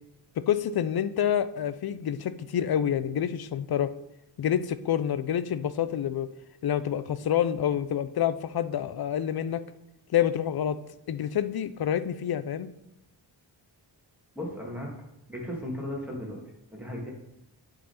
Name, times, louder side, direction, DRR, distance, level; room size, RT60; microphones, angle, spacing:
voice 1, 0.4-3.9 4.4-6.3 6.6-9.6 10.1-10.8 11.1-12.7, left 9 dB, 60° left, 13 dB, 0.5 m, -27 dB
voice 2, 14.4-14.9 15.3-16.4 16.7-17.1, left 1 dB, 5° right, -3 dB, 2.3 m, -35 dB
10.0 x 3.9 x 4.3 m, 0.87 s
wide cardioid pair, 75°, 44 cm